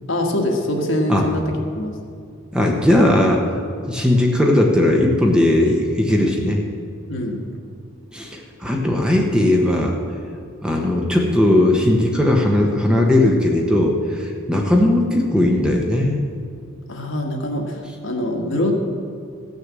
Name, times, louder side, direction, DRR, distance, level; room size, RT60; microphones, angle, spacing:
voice 1, 0.1-2.0 7.1-7.4 16.9-18.7, left 1 dB, 60° left, 2 dB, 1.5 m, -24 dB
voice 2, 2.5-3.4 3.9-6.6 8.1-10.0 10.6-16.2, left 1 dB, 5° right, 0 dB, 1.0 m, -17 dB
15.0 x 6.6 x 7.5 m, 2.3 s
head